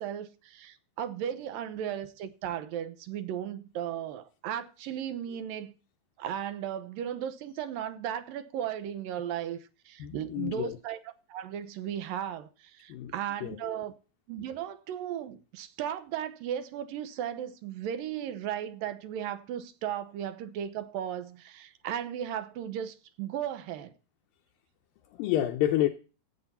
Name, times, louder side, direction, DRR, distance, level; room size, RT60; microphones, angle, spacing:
voice 1, 0.0-5.8 6.2-11.0 11.3-13.9 14.3-23.9, right 10 dB, 70° right, 2.4 m, -36 dB
voice 2, 10.0-10.8 12.9-13.1 13.4-13.8 25.2-25.9, left 13 dB, 75° left, 2.3 m, -29 dB
14.5 x 8.4 x 4.1 m
omnidirectional pair, 4.5 m